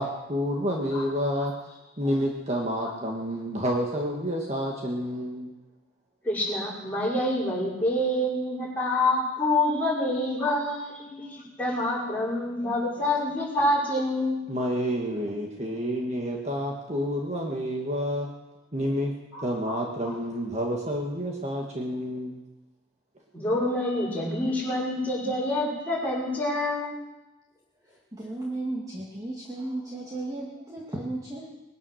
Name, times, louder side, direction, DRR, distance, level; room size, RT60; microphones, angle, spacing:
voice 1, 0.0-1.5 2.0-5.5 13.0-13.1 14.5-18.3 18.7-19.1 19.4-22.4 24.2-24.4, equal, 35° right, 0 dB, 1.7 m, -29 dB
voice 2, 6.2-14.4 19.3-19.8 23.3-27.0, left 1 dB, 10° left, -7 dB, 5.9 m, -27 dB
voice 3, 27.9-31.5, right 2 dB, 20° right, -4 dB, 2.1 m, -35 dB
21.0 x 11.0 x 6.4 m, 1.0 s
head